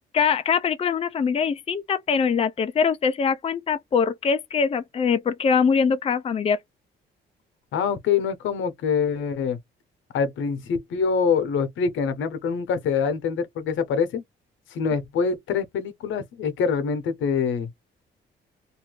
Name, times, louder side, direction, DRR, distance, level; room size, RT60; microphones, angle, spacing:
voice 1, 0.1-6.6, left 6 dB, 30° left, 0.5 m, -23 dB
voice 2, 7.7-9.6 10.1-14.2 14.7-17.7, left 6 dB, 75° left, 0.8 m, -25 dB
2.6 x 2.4 x 3.0 m
cardioid pair, 90°, 20 cm